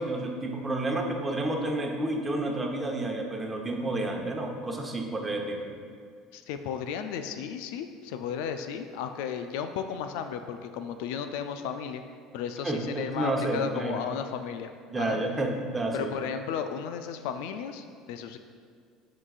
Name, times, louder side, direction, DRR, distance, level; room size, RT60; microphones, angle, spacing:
voice 1, 0.0-5.7 12.6-14.0 14.9-16.1, right 2 dB, 20° right, 1 dB, 0.9 m, -30 dB
voice 2, 6.3-12.0 12.3-15.2 15.9-18.4, left 7 dB, 80° left, 8 dB, 0.3 m, -34 dB
11.0 x 3.9 x 2.4 m, 2.1 s
supercardioid pair, 95°, 0 cm